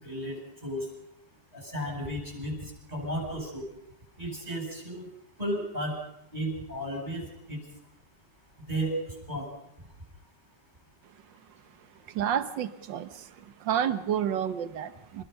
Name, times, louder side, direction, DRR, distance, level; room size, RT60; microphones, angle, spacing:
voice 1, 0.0-0.9 1.5-3.7 4.2-5.1 5.4-5.9 6.3-7.6 8.7-8.9 9.3-9.5, equal, 20° right, 1 dB, 8.1 m, -34 dB
voice 2, 12.1-15.2, right 9 dB, 85° right, 12 dB, 1.8 m, -30 dB
28.0 x 21.0 x 5.6 m, 0.79 s
omnidirectional pair, 1.9 m